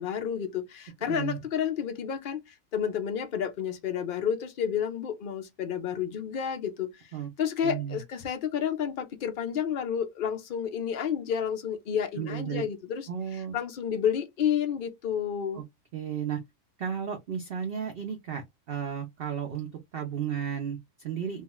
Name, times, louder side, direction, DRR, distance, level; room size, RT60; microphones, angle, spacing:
voice 1, 0.0-7.1 7.4-15.6, left 8 dB, 80° left, 0.4 m, -30 dB
voice 2, 1.1-1.4 7.1-7.3 7.6-8.0 12.2-12.6 13.1-13.6 15.5-15.6 15.9-16.4 16.8-21.4, right 8 dB, 70° right, 0.5 m, -33 dB
2.4 x 2.3 x 2.9 m
omnidirectional pair, 1.6 m